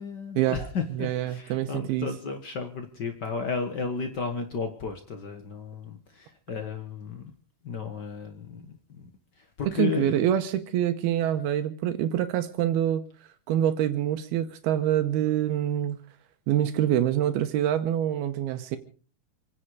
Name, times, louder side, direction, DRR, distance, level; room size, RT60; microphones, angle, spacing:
voice 1, 0.0-7.3 7.6-9.1 9.4-10.3, left 5 dB, 75° left, 6 dB, 0.9 m, -34 dB
voice 2, 0.9-2.1 9.8-13.1 13.5-16.0 16.5-18.8, right 11 dB, 85° right, 8 dB, 2.9 m, -25 dB
27.0 x 10.0 x 4.9 m, 0.38 s
omnidirectional pair, 4.4 m